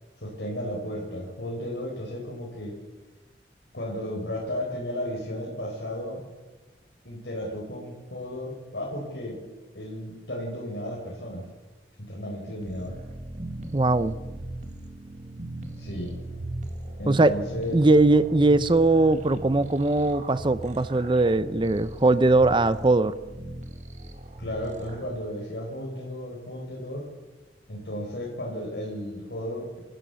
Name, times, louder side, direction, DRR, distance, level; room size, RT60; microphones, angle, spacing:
voice 1, 0.2-2.7 3.7-6.2 7.0-9.4 9.7-11.5 12.0-13.0 15.8-16.1 17.0-17.9 24.4-27.1 27.7-29.8, equal, 75° left, -3 dB, 4.4 m, -34 dB
sound 1, 12.6-25.1, right 1 dB, 45° right, 2.1 m, -39 dB
voice 2, 13.7-14.2 17.1-17.3 17.7-23.1, right 2 dB, 25° right, 14 dB, 0.6 m, -20 dB
28.0 x 13.5 x 6.9 m, 1.2 s
head